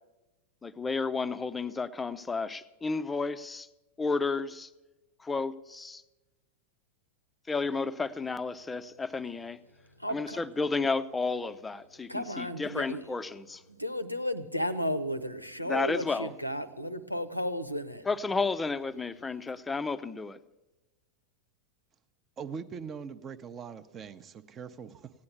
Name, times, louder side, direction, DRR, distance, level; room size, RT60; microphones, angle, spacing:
voice 1, 0.6-3.7 4.0-4.7 5.2-6.0 7.5-9.6 10.1-13.6 15.7-16.3 18.1-20.4, left 4 dB, 10° left, 13 dB, 0.6 m, -32 dB
voice 2, 10.0-10.4 12.1-13.1 13.7-18.1, equal, 90° left, 14 dB, 0.8 m, -34 dB
voice 3, 22.4-25.1, right 6 dB, 25° right, 12 dB, 0.8 m, -41 dB
16.0 x 9.6 x 7.1 m, 1.0 s
figure-of-eight pair, 90°, 0 cm